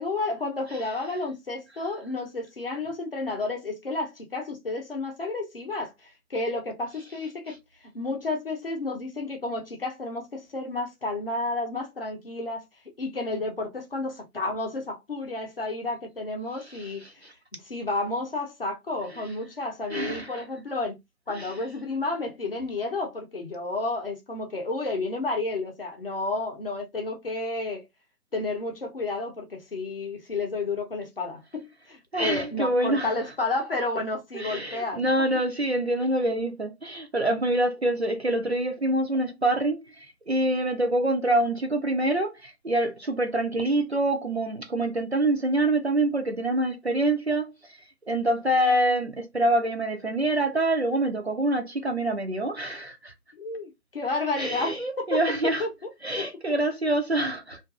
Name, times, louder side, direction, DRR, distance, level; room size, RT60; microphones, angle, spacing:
voice 1, 0.0-7.6 7.9-12.6 13.0-17.0 17.6-20.9 21.3-27.8 28.3-35.2 53.4-55.2 55.6-55.9 56.2-56.3, left 2 dB, 40° left, 0.7 m, -31 dB
voice 2, 16.6-17.3 19.9-20.4 21.3-21.6 32.1-33.1 34.3-53.1 54.4-55.6 56.0-57.6, right 1 dB, 45° right, 0.5 m, -26 dB
2.5 x 2.4 x 2.3 m
figure-of-eight pair, 150°, 47 cm